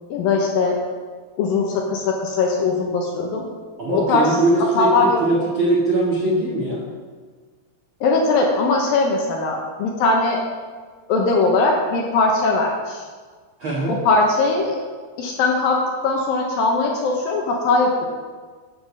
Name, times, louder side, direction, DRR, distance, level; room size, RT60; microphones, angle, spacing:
voice 1, 0.1-0.8 1.4-3.4 3.9-4.3 4.8-5.2 8.0-10.4 11.1-13.0 14.0-14.8 15.2-15.8 16.0-18.1, left 3 dB, 75° left, 0 dB, 2.4 m, -20 dB
voice 2, 3.8-6.8 13.6-13.9, right 1 dB, 80° right, -5 dB, 1.1 m, -21 dB
9.0 x 6.0 x 6.2 m, 1.5 s
omnidirectional pair, 4.9 m